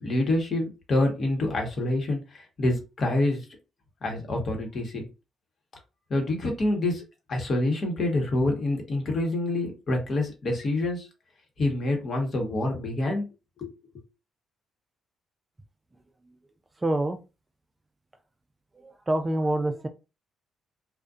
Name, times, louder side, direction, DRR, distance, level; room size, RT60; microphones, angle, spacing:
voice 1, 0.0-3.4 4.0-5.0 6.1-7.0 7.3-11.1 11.6-13.2 13.6-13.7, left 2 dB, 50° left, 2 dB, 1.0 m, -26 dB
voice 2, 16.8-17.2 19.1-19.9, right 1 dB, 20° right, 7 dB, 0.3 m, -25 dB
2.5 x 2.1 x 2.4 m, 0.29 s
cardioid pair, 90°, 0 cm